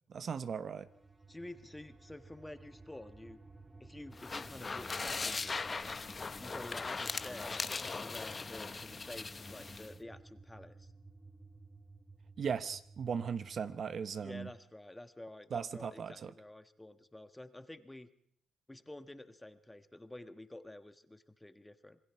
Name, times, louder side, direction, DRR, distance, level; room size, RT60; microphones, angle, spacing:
voice 1, 0.1-0.9 12.4-14.5 15.5-16.3, right 6 dB, 50° right, 12 dB, 1.0 m, -37 dB
sound 1, 0.8-14.0, right 3 dB, 20° right, 2.3 m, -56 dB
voice 2, 1.3-3.4 3.8-6.0 6.4-10.9 14.2-18.1 18.7-22.0, left 1 dB, 10° left, 9 dB, 1.4 m, -50 dB
sound 2, 4.1-9.9, left 4 dB, 30° left, 0.8 m, -39 dB
26.5 x 21.5 x 4.7 m, 0.65 s
cardioid pair, 90°, 0 cm